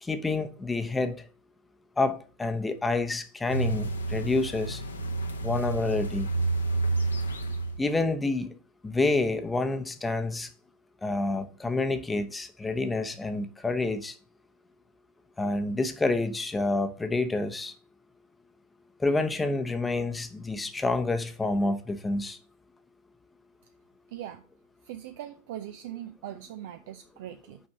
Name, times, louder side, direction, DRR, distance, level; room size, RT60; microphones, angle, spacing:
voice 1, 0.0-1.2 2.0-4.8 5.4-6.3 7.8-8.6 8.8-10.5 11.0-14.2 15.4-17.7 19.0-22.4, left 3 dB, 10° left, 0.9 m, -28 dB
sound 1, 3.5-7.8, right 3 dB, 75° left, 1.0 m, -29 dB
voice 2, 24.1-24.4 24.8-27.6, right 11 dB, 50° right, 0.5 m, -40 dB
5.9 x 5.4 x 6.2 m
figure-of-eight pair, 90°, 0 cm